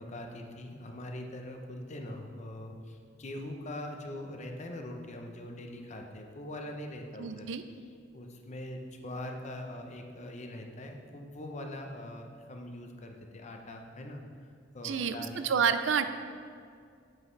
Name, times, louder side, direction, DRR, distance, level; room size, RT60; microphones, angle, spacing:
voice 1, 0.0-7.5 8.1-15.5, left 1 dB, 40° left, 3 dB, 0.7 m, -42 dB
voice 2, 7.2-7.6 14.8-16.2, right 6 dB, 80° right, 10 dB, 0.4 m, -29 dB
7.6 x 7.3 x 3.3 m, 2.3 s
head